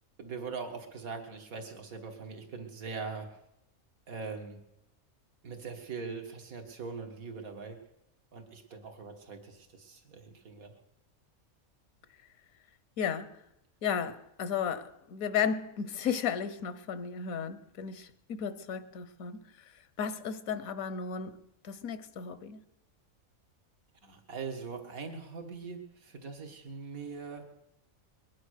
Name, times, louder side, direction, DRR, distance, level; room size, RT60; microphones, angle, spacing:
voice 1, 0.2-3.3 4.1-4.6 5.4-7.8 8.3-10.8 24.0-27.5, right 5 dB, 80° right, 2.2 m, -41 dB
voice 2, 13.0-13.4 13.8-19.7 20.0-22.6, left 7 dB, 80° left, 1.3 m, -34 dB
21.5 x 10.5 x 6.5 m
omnidirectional pair, 1.5 m